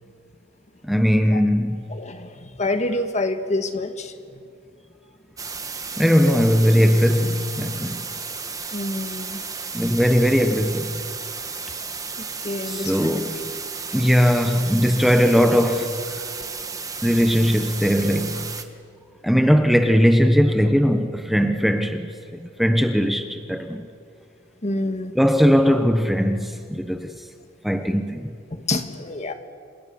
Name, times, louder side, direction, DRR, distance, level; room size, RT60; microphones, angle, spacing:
voice 1, 0.8-2.0 6.0-8.1 9.7-11.0 12.7-13.5 13.9-16.0 17.0-18.5 19.2-22.1 22.4-23.9 25.1-27.2 27.6-28.3, equal, ahead, 1.1 m, -19 dB
voice 2, 1.9-4.4 8.7-9.4 12.2-13.2 24.6-25.2 28.5-29.3, left 2 dB, 40° left, 1.8 m, -27 dB
sound 1, 5.4-18.6, right 5 dB, 20° right, 1.6 m, -33 dB
29.0 x 27.0 x 7.1 m
head